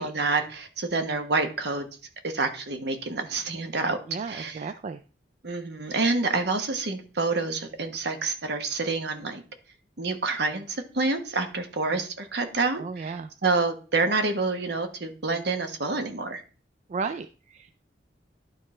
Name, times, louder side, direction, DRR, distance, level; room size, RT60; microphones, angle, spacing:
voice 1, 0.0-1.9 2.2-4.0 4.3-4.6 5.4-9.4 10.0-13.2 13.4-16.4, right 3 dB, 65° right, 7 dB, 1.1 m, -28 dB
voice 2, 4.1-5.0 12.8-13.3 16.9-17.8, right 4 dB, 40° right, 10 dB, 0.3 m, -34 dB
11.5 x 4.2 x 3.2 m, 0.37 s
head